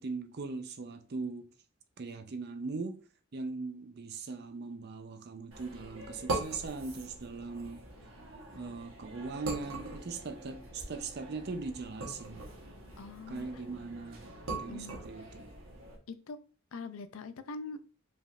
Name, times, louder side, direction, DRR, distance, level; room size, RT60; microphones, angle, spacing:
voice 1, 0.0-1.5 2.0-3.0 3.3-7.9 8.5-12.5 13.3-15.5, right 4 dB, 50° right, 0.5 m, -40 dB
sound 1, 5.5-16.0, right 2 dB, 65° right, 1.2 m, -42 dB
voice 2, 13.0-13.6 14.5-15.1 16.1-16.4 16.7-17.8, left 3 dB, 70° left, 0.4 m, -43 dB
5.2 x 3.4 x 2.4 m
head